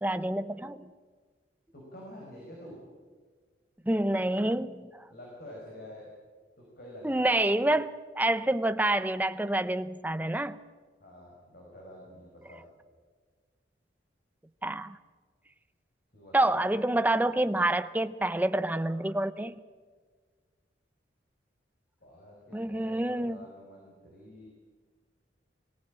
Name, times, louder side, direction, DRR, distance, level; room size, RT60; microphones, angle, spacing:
voice 1, 0.0-0.9 3.9-4.9 7.0-10.6 14.6-15.0 16.3-19.5 22.5-23.4, right 1 dB, 10° right, 12 dB, 0.6 m, -27 dB
voice 2, 1.7-2.8 5.1-6.1 6.6-7.5 11.0-12.7 16.1-16.5 22.0-24.5, left 1 dB, 55° left, -3 dB, 5.7 m, -48 dB
22.5 x 16.0 x 8.8 m, 1.5 s
head